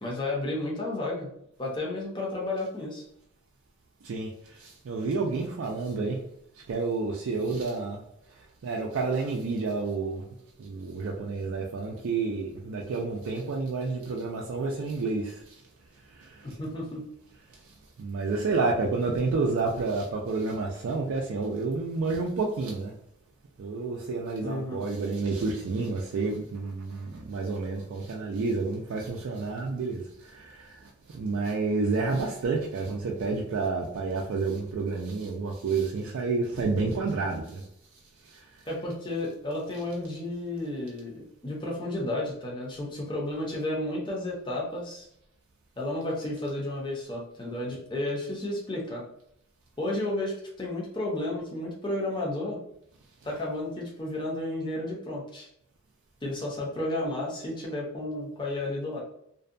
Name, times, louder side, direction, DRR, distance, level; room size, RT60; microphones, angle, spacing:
voice 1, 0.0-1.3 1.6-3.0 16.4-17.0 24.4-24.8 38.7-45.1 45.8-49.0 49.8-52.6 53.2-55.5 56.2-59.0, left 1 dB, 20° left, -2 dB, 0.6 m, -32 dB
voice 2, 4.6-6.2 6.7-8.0 8.6-10.2 10.6-15.4 16.2-16.3 18.0-22.9 23.6-30.7 31.1-37.6, right 3 dB, 60° right, -1 dB, 0.3 m, -29 dB
2.6 x 2.2 x 2.5 m, 0.73 s
head